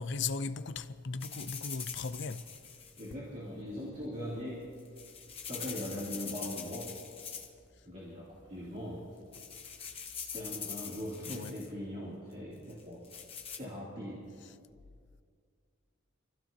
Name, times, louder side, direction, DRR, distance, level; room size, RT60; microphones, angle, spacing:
voice 1, 0.0-2.5 11.3-11.6 14.4-14.5, left 4 dB, 55° left, 0.5 m, -37 dB
sound 1, 1.2-3.1 4.6-7.7 7.9-8.4 8.9-9.0 9.3-11.7 12.7-13.6, left 7 dB, 25° left, 1.2 m, -43 dB
voice 2, 3.0-4.6 5.5-7.0 7.8-9.1 10.2-13.1 13.6-14.3, equal, 35° right, 3.0 m, -40 dB
27.0 x 15.5 x 2.9 m
head